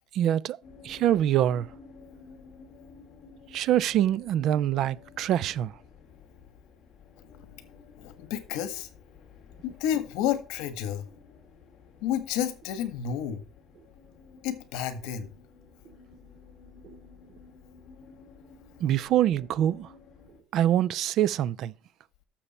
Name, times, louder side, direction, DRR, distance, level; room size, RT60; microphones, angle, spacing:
voice 1, 0.1-0.6 0.8-1.7 3.5-5.7 16.8-16.9 18.8-19.9 20.5-21.7, right 11 dB, 45° right, 0.4 m, -25 dB
sound 1, 0.6-20.4, left 5 dB, 35° left, 2.5 m, -53 dB
voice 2, 8.0-8.9 9.6-11.1 12.0-13.4 14.4-15.3, left 10 dB, 75° left, 1.6 m, -30 dB
12.0 x 7.0 x 4.3 m
cardioid pair, 180°, 0 cm